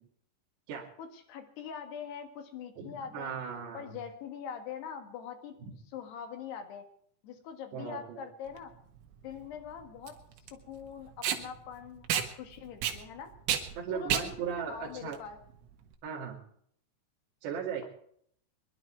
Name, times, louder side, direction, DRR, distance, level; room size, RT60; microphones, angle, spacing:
voice 1, 1.0-3.4 3.7-5.6 5.9-6.8 7.2-8.7 9.2-10.1 10.5-13.3 13.9-15.4, left 7 dB, 65° left, 5 dB, 3.6 m, -43 dB
voice 2, 2.8-3.9 5.6-5.7 7.7-8.3 13.8-15.2 16.0-16.4 17.4-17.9, right 7 dB, 65° right, -4 dB, 4.3 m, -37 dB
Packing tape duct tape, 8.5-15.9, right 10 dB, 90° right, 4.0 m, -34 dB
24.5 x 11.0 x 4.6 m, 0.66 s
omnidirectional pair, 5.5 m